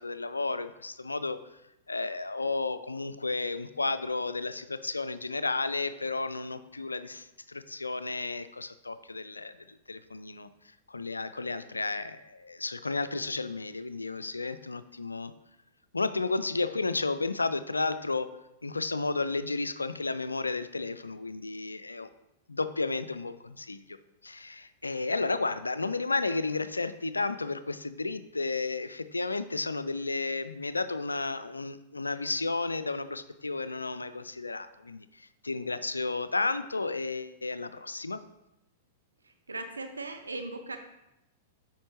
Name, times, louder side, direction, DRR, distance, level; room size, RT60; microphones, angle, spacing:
voice 1, 0.0-1.4 1.9-10.5 10.9-15.3 15.9-18.3 18.6-22.1 22.5-24.0 24.2-38.2, left 3 dB, 85° left, 13 dB, 0.3 m, -32 dB
voice 2, 39.5-40.8, right 2 dB, 85° right, 6 dB, 0.5 m, -38 dB
8.4 x 5.6 x 3.0 m, 0.91 s
figure-of-eight pair, 100°, 0 cm